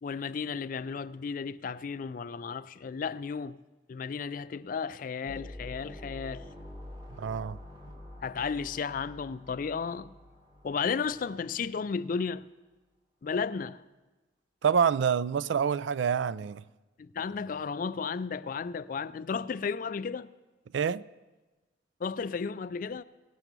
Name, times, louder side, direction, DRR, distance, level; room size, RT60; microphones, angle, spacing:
voice 1, 0.0-3.6 3.9-6.5 8.2-10.1 10.6-12.5 13.2-13.8 17.0-20.3 22.0-23.0, left 5 dB, 45° left, 0.3 m, -34 dB
sound 1, 5.2-11.7, left 1 dB, 25° right, 2.2 m, -47 dB
voice 2, 7.1-7.6 14.6-16.6 20.7-21.0, right 7 dB, 75° right, 0.3 m, -27 dB
18.0 x 7.9 x 6.0 m
head